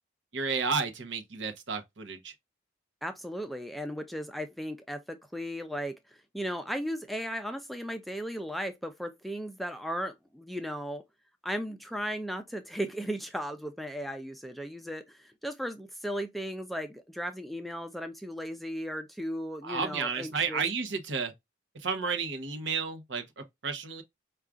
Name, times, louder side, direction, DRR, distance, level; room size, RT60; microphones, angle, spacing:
voice 1, 0.3-2.3 19.6-21.3 21.7-24.0, right 5 dB, 75° right, 0.8 m, -32 dB
voice 2, 3.0-11.0 11.4-20.6, equal, ahead, 0.3 m, -36 dB
4.6 x 2.3 x 2.4 m
head